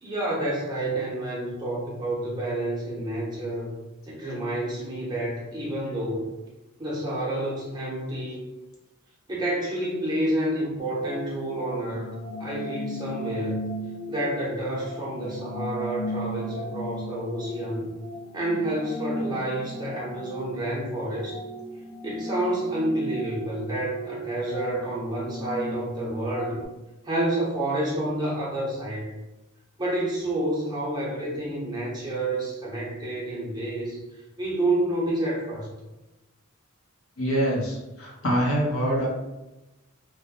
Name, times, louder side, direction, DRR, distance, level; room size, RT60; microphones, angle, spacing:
voice 1, 0.0-3.8 4.1-6.2 6.8-8.5 9.3-13.6 14.1-17.9 18.3-21.4 22.0-26.6 27.0-29.1 29.8-34.0 34.4-35.7, right 1 dB, 20° right, -5 dB, 0.7 m, -29 dB
sound 1, 10.8-26.7, equal, 50° left, 0.4 m, -36 dB
voice 2, 37.2-39.1, equal, 80° left, -3 dB, 0.8 m, -25 dB
2.2 x 2.1 x 2.8 m, 1.0 s
head